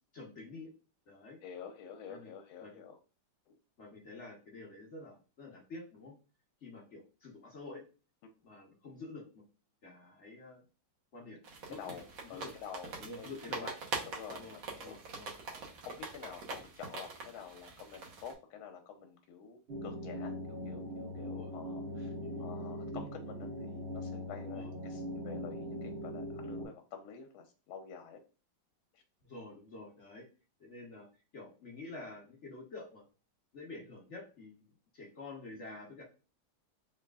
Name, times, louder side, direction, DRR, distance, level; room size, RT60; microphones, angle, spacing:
voice 1, 0.1-0.7 1.1-1.4 2.1-2.3 2.6-2.8 3.8-6.1 6.6-7.8 8.4-9.4 9.8-10.6 11.1-11.4 11.7-12.0 12.3-12.5 13.0-13.8 14.3-14.6 14.8-15.3 21.2-21.5 22.2-22.5 24.5-24.7 29.2-30.2 30.6-31.1 31.3-33.0 33.5-34.6 34.9-36.0, left 2 dB, 50° left, -2 dB, 0.9 m, -48 dB
voice 2, 1.4-2.9 3.5-3.6 11.7-13.3 13.6-13.7 14.1-15.0 15.8-28.2 28.9-29.0, left 7 dB, 85° left, 4 dB, 1.4 m, -49 dB
sound 1, 11.4-18.3, right 3 dB, 70° right, 1.7 m, -44 dB
sound 2, 19.7-26.7, equal, 45° right, 0.8 m, -41 dB
3.8 x 3.2 x 2.2 m, 0.34 s
omnidirectional pair, 2.2 m